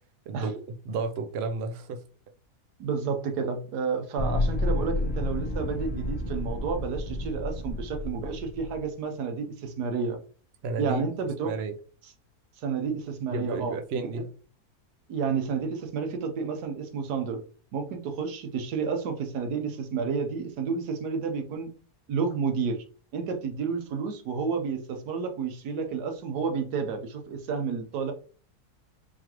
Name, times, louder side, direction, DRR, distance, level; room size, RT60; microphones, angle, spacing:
voice 1, 0.3-2.0 10.6-11.0 11.4-11.7 13.3-14.2, right 4 dB, 60° right, 7 dB, 0.6 m, -32 dB
voice 2, 2.8-10.2 10.8-11.5 12.6-13.8 15.1-17.4 17.7-21.7 22.1-22.8 23.1-28.1, right 5 dB, 85° right, 6 dB, 1.4 m, -30 dB
sound 1, 4.2-8.8, left 2 dB, 25° left, 0.6 m, -30 dB
4.7 x 3.1 x 2.9 m, 0.42 s
omnidirectional pair, 1.7 m